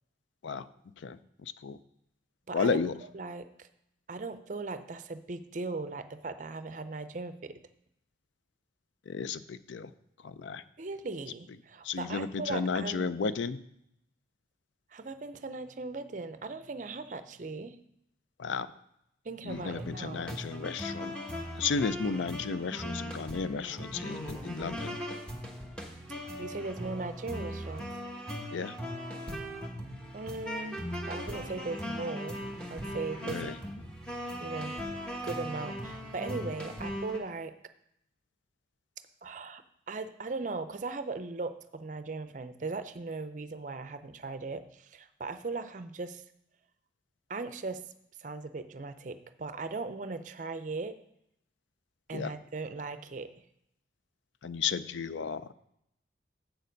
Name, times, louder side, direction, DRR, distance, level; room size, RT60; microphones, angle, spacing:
voice 1, 1.0-1.8 2.5-3.0 9.1-9.9 10.2-10.6 11.8-13.6 18.4-18.7 19.4-21.1 21.6-24.9 28.5-28.7 33.2-33.6 52.1-52.3 54.4-55.5, left 5 dB, 85° left, 14 dB, 0.4 m, -33 dB
voice 2, 2.5-2.8 3.1-3.7 4.1-7.6 10.8-13.1 14.9-17.8 19.2-20.3 26.4-27.9 30.1-32.4 32.7-33.6 34.4-34.8 35.2-37.5 39.2-46.2 47.3-47.8 48.2-51.0 52.1-53.3, right 3 dB, 40° right, 11 dB, 0.5 m, -38 dB
sound 1, 19.5-37.2, equal, 5° left, 1.0 m, -39 dB
7.8 x 6.8 x 5.1 m, 0.77 s
head